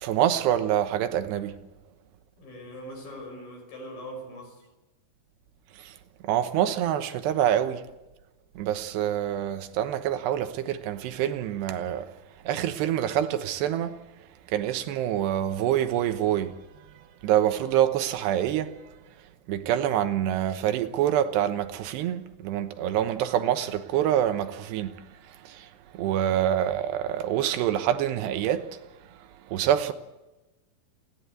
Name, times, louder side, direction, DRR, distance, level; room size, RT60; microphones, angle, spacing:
voice 1, 0.0-1.6 5.8-5.9 6.2-7.8 8.6-12.1 12.4-14.0 14.5-16.6 17.2-18.8 19.5-25.0 25.4-25.7 25.9-28.8 29.5-29.9, right 11 dB, 90° right, 3.3 m, -26 dB
voice 2, 2.4-4.6, equal, 60° left, 7.2 m, -42 dB
28.5 x 11.0 x 8.3 m
omnidirectional pair, 4.7 m